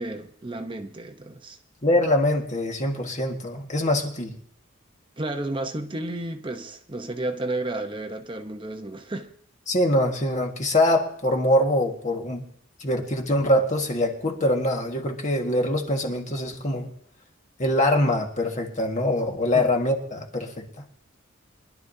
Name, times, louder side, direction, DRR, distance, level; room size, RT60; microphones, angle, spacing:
voice 1, 0.0-1.6 5.2-9.3 19.5-19.7, right 2 dB, 25° right, 0.8 m, -32 dB
voice 2, 1.8-4.3 9.7-12.4 12.8-16.9 17.6-20.8, left 1 dB, 35° left, 1.7 m, -23 dB
24.0 x 11.5 x 2.7 m
head